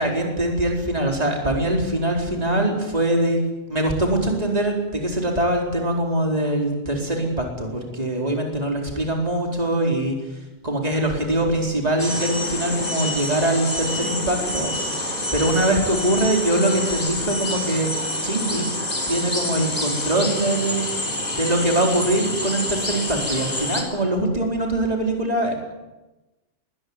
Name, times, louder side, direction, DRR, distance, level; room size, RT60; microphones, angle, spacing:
voice 1, 0.0-3.4 3.7-10.2 10.6-14.7 15.3-17.9 18.2-18.7 19.1-20.9 21.3-25.5, right 1 dB, 30° right, 0 dB, 4.4 m, -23 dB
sound 1, 12.0-23.8, left 1 dB, 30° left, 4.3 m, -27 dB
21.5 x 19.5 x 9.7 m, 1.1 s
omnidirectional pair, 1.4 m